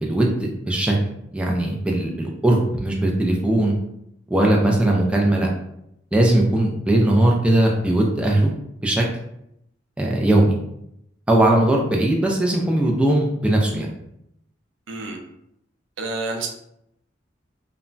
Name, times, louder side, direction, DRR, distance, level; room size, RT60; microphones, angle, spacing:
voice 1, 0.0-1.0 1.3-3.7 4.3-5.5 6.1-8.5 8.8-9.0 10.0-10.6 11.3-13.9, right 1 dB, 5° right, -1 dB, 0.3 m, -19 dB
voice 2, 14.9-15.2 16.0-16.5, right 2 dB, 80° right, 2 dB, 0.5 m, -28 dB
2.1 x 2.1 x 3.7 m, 0.77 s
head